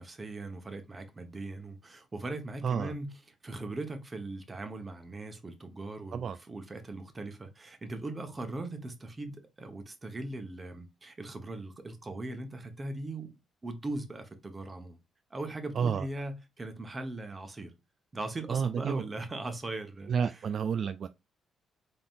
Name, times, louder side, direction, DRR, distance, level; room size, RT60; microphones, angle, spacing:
voice 1, 0.0-3.1 3.4-13.3 13.6-15.0 15.3-17.7 18.1-20.1, right 2 dB, 25° right, 1.1 m, -39 dB
voice 2, 15.7-16.1 18.5-19.0 20.1-21.1, right 7 dB, 55° right, 0.3 m, -30 dB
3.9 x 3.7 x 2.5 m
cardioid pair, 90°, 0 cm